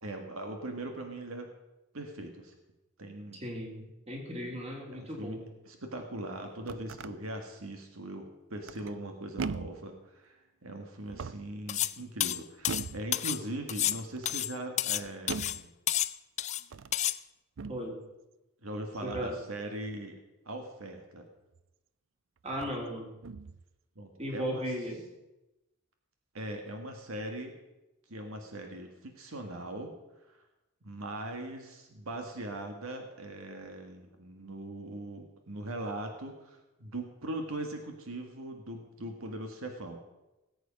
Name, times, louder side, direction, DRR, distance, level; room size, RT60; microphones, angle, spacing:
voice 1, 0.0-1.5 1.9-2.5 3.0-3.4 4.9-5.4 5.6-15.7 18.6-20.2 20.4-21.3 23.9-24.6 26.3-27.5 28.1-29.9 30.3-30.4 30.8-40.0, right 1 dB, 90° right, 4 dB, 1.7 m, -40 dB
voice 2, 3.3-5.5 17.7-18.0 19.0-19.4 22.4-23.1 24.2-25.0, equal, 30° right, -1 dB, 3.3 m, -36 dB
sound 1, 6.4-7.1 8.6-9.0 9.4-9.9 11.0-11.6 12.7-13.1 13.9-14.4 15.3-15.7 16.6-17.0 17.6-17.9 19.1-19.4 21.5-21.6 22.5-22.8 23.2-23.6, right 5 dB, 65° right, 0.5 m, -40 dB
sound 2, 11.7-11.9 12.2-13.4 13.7-15.0 15.3-15.6 15.9-16.6 16.9-17.2, left 12 dB, 35° left, 0.4 m, -30 dB
19.0 x 8.1 x 5.3 m, 0.99 s
head